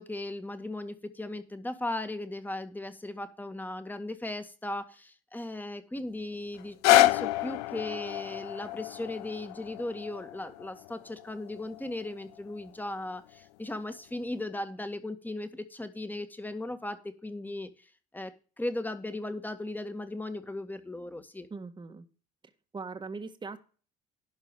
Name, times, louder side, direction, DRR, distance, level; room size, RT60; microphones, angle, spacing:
voice 1, 0.0-17.7 18.1-21.5, left 1 dB, 10° left, 10 dB, 1.9 m, -37 dB
sound 1, 6.6-12.7 13.3-13.4, left 18 dB, 85° left, 0.6 m, -28 dB
voice 2, 21.5-22.0 22.7-23.6, right 4 dB, 25° right, 8 dB, 1.7 m, -40 dB
11.5 x 4.8 x 7.3 m, 0.37 s
supercardioid pair, 75°, 19 cm